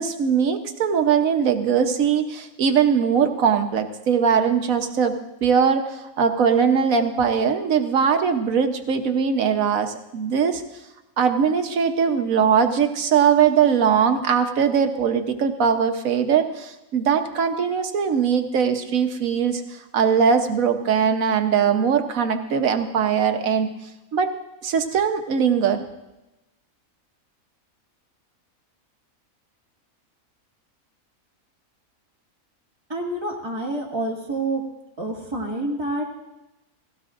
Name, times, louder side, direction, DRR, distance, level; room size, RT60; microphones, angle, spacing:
voice 1, 0.0-10.6 11.2-23.7 24.1-24.3 24.6-25.8, right 7 dB, 75° right, 6 dB, 1.4 m, -21 dB
voice 2, 32.9-34.6 35.0-36.0, right 2 dB, 20° right, -3 dB, 2.2 m, -27 dB
17.0 x 16.5 x 2.5 m, 1.0 s
omnidirectional pair, 1.5 m